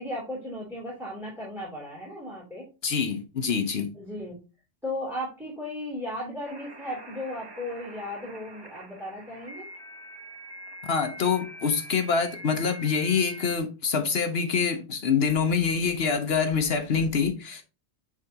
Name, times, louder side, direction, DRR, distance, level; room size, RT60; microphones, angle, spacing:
voice 1, 0.0-2.7 3.9-4.4 4.8-9.7, left 1 dB, ahead, 3.2 m, -36 dB
voice 2, 2.8-3.9 10.9-17.6, left 6 dB, 65° left, 1.1 m, -25 dB
sound 1, 6.4-13.6, right 1 dB, 25° right, 0.9 m, -44 dB
10.0 x 3.8 x 2.8 m
omnidirectional pair, 1.1 m